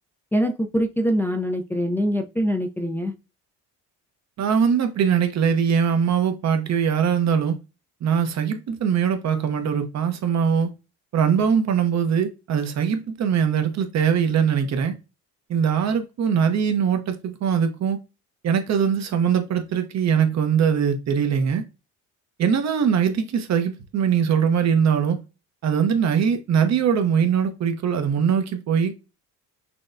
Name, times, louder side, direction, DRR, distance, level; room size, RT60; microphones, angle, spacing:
voice 1, 0.3-3.1, equal, 5° left, 0.4 m, -24 dB
voice 2, 4.4-7.6 8.0-10.7 11.1-14.9 15.5-18.0 18.4-21.6 22.4-25.2 25.6-28.9, right 7 dB, 50° right, 0.9 m, -21 dB
6.0 x 2.2 x 2.6 m
cardioid pair, 95°, 34 cm